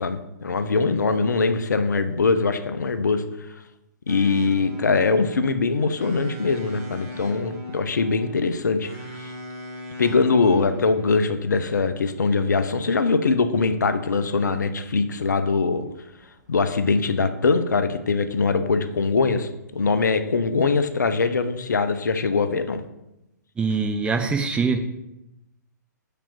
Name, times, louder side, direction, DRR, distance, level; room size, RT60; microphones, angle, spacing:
voice 1, 0.0-3.2 4.1-8.9 10.0-15.8 16.5-22.8, left 4 dB, 70° left, 10 dB, 0.7 m, -22 dB
sound 1, 4.1-22.5, equal, 50° right, 2.0 m, -43 dB
voice 2, 23.6-24.8, right 4 dB, 10° right, 6 dB, 0.6 m, -23 dB
7.1 x 5.1 x 4.5 m, 0.91 s
figure-of-eight pair, 120°, 10 cm